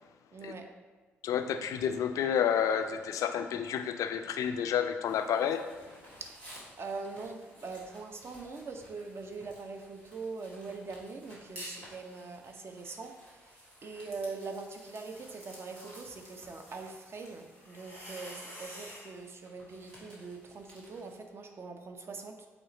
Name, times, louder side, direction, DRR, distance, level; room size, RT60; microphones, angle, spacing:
voice 1, 0.3-0.7 6.2-6.4 6.8-22.5, right 4 dB, 40° right, 5 dB, 0.7 m, -42 dB
voice 2, 1.2-5.7, left 8 dB, 55° left, 8 dB, 0.4 m, -30 dB
sound 1, 5.0-21.2, equal, 70° right, 1.7 m, -57 dB
sound 2, 11.6-11.9 12.3-19.1, equal, 90° right, 1.0 m, -50 dB
8.2 x 3.2 x 4.0 m, 1.4 s
figure-of-eight pair, 45°, 7 cm